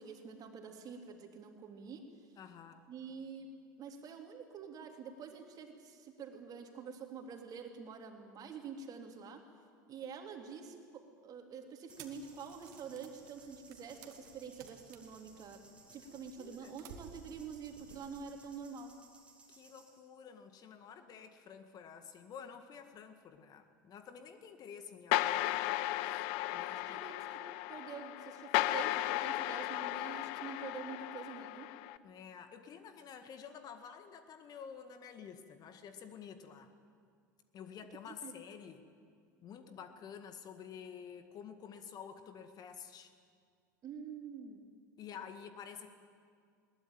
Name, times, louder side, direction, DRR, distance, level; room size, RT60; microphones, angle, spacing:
voice 1, 0.0-2.1 2.9-9.4 9.9-15.6 15.9-19.0 26.5-27.4 27.7-31.7 38.1-38.3 43.8-44.7, right 6 dB, 35° right, 3 dB, 3.4 m, -47 dB
voice 2, 2.4-2.8 16.0-16.7 19.5-25.7 26.0-26.2 26.5-27.0 32.0-36.7 37.5-38.9 39.4-43.1 45.0-45.9, left 7 dB, 40° left, 8 dB, 1.9 m, -50 dB
sound 1, 11.9-20.0, right 3 dB, 10° right, 4.9 m, -61 dB
sound 2, 12.0-18.7, right 7 dB, 60° right, 2.3 m, -57 dB
sound 3, 25.1-32.0, left 16 dB, 55° left, 0.8 m, -35 dB
21.0 x 19.0 x 9.2 m, 2.2 s
hypercardioid pair, 80°, 10 cm